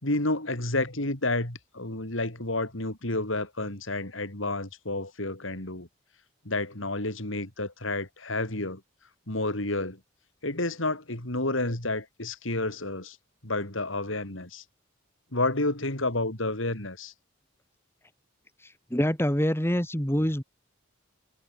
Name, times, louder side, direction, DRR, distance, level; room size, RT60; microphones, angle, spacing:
voice 1, 0.0-5.9 6.4-8.8 9.3-10.0 10.4-13.2 13.4-14.6 15.3-17.1, left 2 dB, 70° left, 4.4 m, -30 dB
voice 2, 18.9-20.4, equal, 10° left, 2.5 m, -25 dB
head